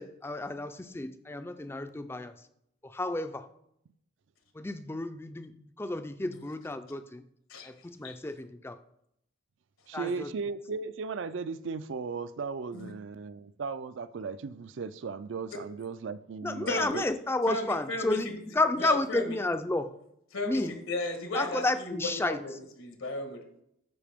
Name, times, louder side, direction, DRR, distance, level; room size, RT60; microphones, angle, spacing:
voice 1, 0.0-2.3 2.8-3.5 4.5-7.2 7.6-8.8 9.9-10.3 16.4-19.9 20.4-20.8 21.3-22.4, left 2 dB, 10° left, 0.4 m, -31 dB
voice 2, 9.9-17.0, right 5 dB, 60° right, 0.4 m, -36 dB
voice 3, 16.7-17.1 17.5-18.3 18.8-19.4 20.3-22.5 22.8-23.4, left 2 dB, 80° left, 1.4 m, -34 dB
12.0 x 5.0 x 3.5 m
head